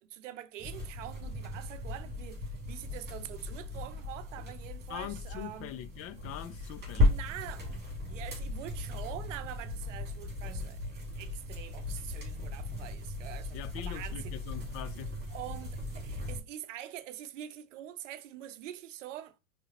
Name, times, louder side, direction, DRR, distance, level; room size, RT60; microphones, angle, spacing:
voice 1, 0.0-5.7 7.1-7.7 8.1-14.4 15.3-19.4, right 12 dB, 85° right, 0.6 m, -45 dB
sound 1, 0.6-16.4, left 2 dB, 30° right, 2.7 m, -36 dB
voice 2, 4.9-7.1 13.5-15.1, left 11 dB, 40° left, 0.5 m, -42 dB
4.8 x 3.3 x 2.9 m
hypercardioid pair, 100°, 36 cm